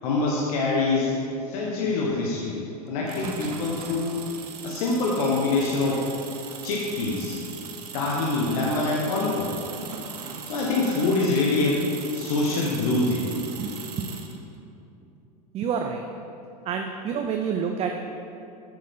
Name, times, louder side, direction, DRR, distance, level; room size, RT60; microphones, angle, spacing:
voice 1, 0.0-1.1 1.4-2.6 2.9-4.1 4.6-6.1 6.6-7.4 7.9-9.6 10.5-11.8 12.1-13.3, left 3 dB, 65° left, -3 dB, 1.2 m, -25 dB
sound 1, 3.1-14.4, right 6 dB, 80° right, 0.9 m, -39 dB
voice 2, 15.5-16.0 16.7-18.0, right 7 dB, 30° right, 4 dB, 0.5 m, -28 dB
8.2 x 6.6 x 3.7 m, 2.7 s
hypercardioid pair, 100°, 20 cm